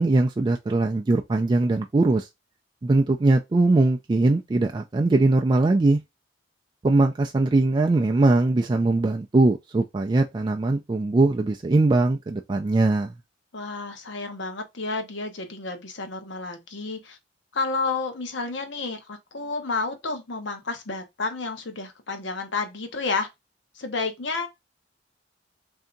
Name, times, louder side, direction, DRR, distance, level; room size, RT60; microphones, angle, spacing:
voice 1, 0.0-2.3 2.8-6.0 6.8-13.1, right 2 dB, 25° right, 0.3 m, -21 dB
voice 2, 13.5-17.2 17.5-23.3 23.8-24.5, left 3 dB, 70° left, 0.9 m, -30 dB
3.4 x 2.7 x 3.8 m
head